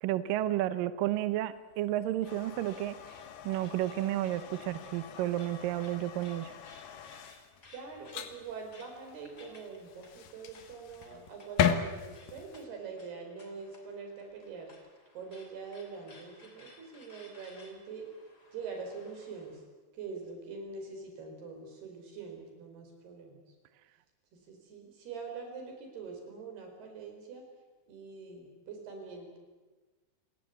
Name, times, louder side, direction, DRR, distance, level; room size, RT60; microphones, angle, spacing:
voice 1, 0.0-3.0 3.4-6.5, right 13 dB, 85° right, 13 dB, 2.0 m, -31 dB
sound 1, 1.4-19.6, left 2 dB, 25° left, 3.1 m, -60 dB
sound 2, 2.2-12.6, left 8 dB, 65° left, 2.4 m, -38 dB
voice 2, 7.7-14.7 15.1-18.1 18.5-19.6 19.9-23.4 24.3-27.5 27.9-29.4, right 4 dB, 60° right, 3 dB, 6.5 m, -44 dB
29.5 x 17.5 x 8.5 m, 1.2 s
omnidirectional pair, 5.3 m